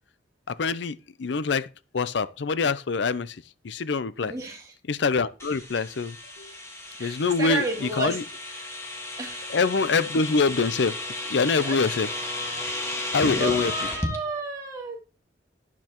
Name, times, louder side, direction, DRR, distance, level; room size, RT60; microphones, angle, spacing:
voice 1, 0.5-1.7 1.9-3.4 3.6-4.3 4.9-6.5 7.0-7.6 8.0-8.2 9.5-11.0 11.3-12.1 13.1-13.7, left 4 dB, 75° left, 0.5 m, -25 dB
voice 2, 4.2-4.7 7.0-8.2 8.5-8.7 9.2-9.6 11.6-11.8 13.4-15.0, right 2 dB, 20° right, 2.9 m, -32 dB
sound 1, 5.4-14.2, left 2 dB, 15° left, 1.6 m, -33 dB
12.0 x 10.5 x 3.0 m
head